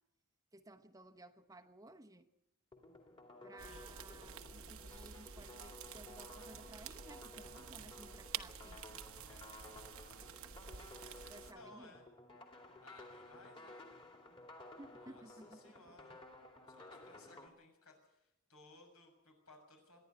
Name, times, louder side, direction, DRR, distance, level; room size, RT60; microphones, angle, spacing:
voice 1, 0.5-2.3 3.4-9.0 11.3-11.9 14.8-15.9, right 1 dB, 15° right, 6 dB, 0.9 m, -57 dB
sound 1, 2.7-17.5, left 2 dB, 25° left, 2.4 m, -55 dB
sound 2, 3.6-11.5, right 7 dB, 70° right, 1.1 m, -50 dB
voice 2, 9.2-9.8 11.0-12.0 12.8-13.9 15.0-16.3 16.7-20.0, left 2 dB, 80° left, 3 dB, 6.8 m, -61 dB
25.5 x 11.0 x 9.5 m, 0.86 s
head